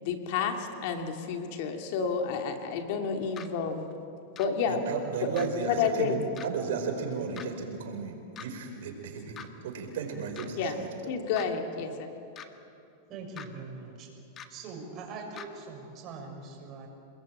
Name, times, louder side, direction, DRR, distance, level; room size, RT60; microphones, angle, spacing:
voice 1, 0.0-3.9 4.4-4.8 5.2-5.3 5.6-6.2 10.6-10.8 11.1-12.1, left 6 dB, 55° left, 4 dB, 2.7 m, -30 dB
sound 1, 3.4-3.5 4.4-4.5 5.4-5.5 6.4-6.5 7.4-7.5 8.4-8.5 9.4-9.5 10.4-10.5 11.4-11.5 12.4-12.5 13.4-13.5 14.4-14.5 15.4-15.5, left 8 dB, 25° left, 1.6 m, -42 dB
voice 2, 4.7-10.9, right 5 dB, 75° right, 4 dB, 5.1 m, -34 dB
voice 3, 13.1-14.1 14.5-16.9, right 4 dB, 35° right, 1 dB, 6.9 m, -42 dB
28.5 x 21.0 x 8.9 m, 2.7 s
supercardioid pair, 145°, 0 cm